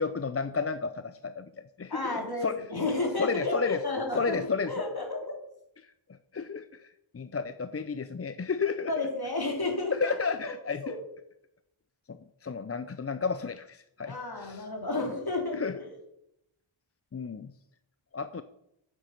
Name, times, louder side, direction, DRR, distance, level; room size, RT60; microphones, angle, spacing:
voice 1, 0.0-1.5 1.8-2.6 3.2-3.8 4.1-4.7 5.8-5.9 6.3-9.1 9.9-10.8 12.1-14.7 15.5-15.7 17.1-17.5 18.1-18.4, left 5 dB, 30° left, 12 dB, 0.5 m, -32 dB
voice 2, 1.9-4.4 4.6-5.3 8.9-10.2 10.4-10.5 10.8-11.0 14.1-15.9, left 2 dB, 45° left, 1 dB, 3.3 m, -32 dB
9.4 x 8.2 x 5.8 m, 0.81 s
cardioid pair, 50°, 50 cm